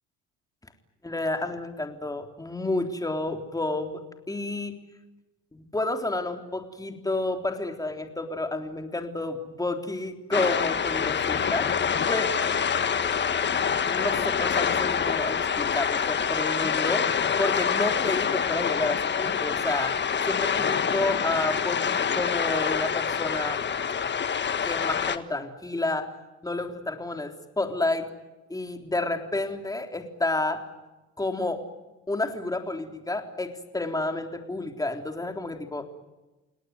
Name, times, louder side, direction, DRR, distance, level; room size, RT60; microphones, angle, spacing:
voice 1, 1.0-4.0 4.3-4.8 5.5-11.7 12.1-12.4 13.9-17.1 17.4-20.0 20.3-23.6 24.7-26.1 26.4-28.1 28.5-30.6 31.2-31.6 32.1-35.9, left 2 dB, 10° left, 5 dB, 3.6 m, -30 dB
sound 1, 10.3-25.2, left 7 dB, 40° left, 1.6 m, -26 dB
29.5 x 18.5 x 9.5 m, 1.1 s
supercardioid pair, 85°, 30 cm